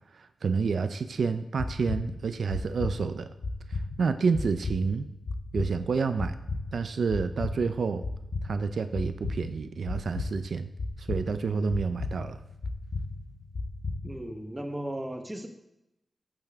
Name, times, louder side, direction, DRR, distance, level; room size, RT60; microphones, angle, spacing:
voice 1, 0.2-3.3 4.0-5.1 5.5-6.3 6.7-8.0 8.4-10.7 11.0-12.4, right 5 dB, 75° right, 10 dB, 0.5 m, -29 dB
sound 1, 1.6-14.3, left 3 dB, 75° left, 1.0 m, -36 dB
voice 2, 14.0-15.5, right 1 dB, 15° right, 4 dB, 0.9 m, -36 dB
14.5 x 7.0 x 3.5 m, 0.89 s
wide cardioid pair, 165°, 0 cm